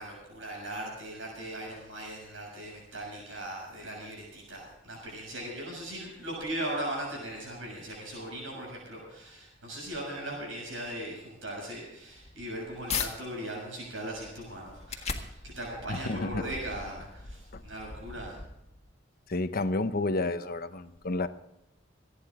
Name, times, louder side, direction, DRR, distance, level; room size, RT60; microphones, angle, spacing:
voice 1, 0.0-18.4, right 1 dB, 80° right, 6.8 m, -39 dB
sound 1, 12.0-13.1 13.6-18.9, left 5 dB, 35° left, 1.7 m, -40 dB
voice 2, 15.9-16.4 17.5-17.6 19.3-21.3, left 2 dB, 50° left, 0.9 m, -30 dB
27.0 x 9.8 x 3.7 m
head